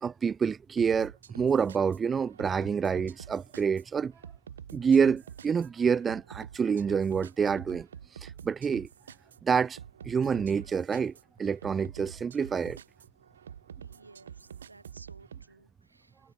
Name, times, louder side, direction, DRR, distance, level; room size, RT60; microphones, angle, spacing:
voice 1, 0.0-4.1 4.7-7.9 8.2-8.9 9.4-9.8 10.0-11.1 11.4-12.8, right 6 dB, 20° right, 0.5 m, -27 dB
sound 1, 0.8-15.5, right 8 dB, 65° right, 0.7 m, -47 dB
voice 2, 13.8-16.3, right 3 dB, 80° right, 5.3 m, -56 dB
figure-of-eight pair, 90°, 0 cm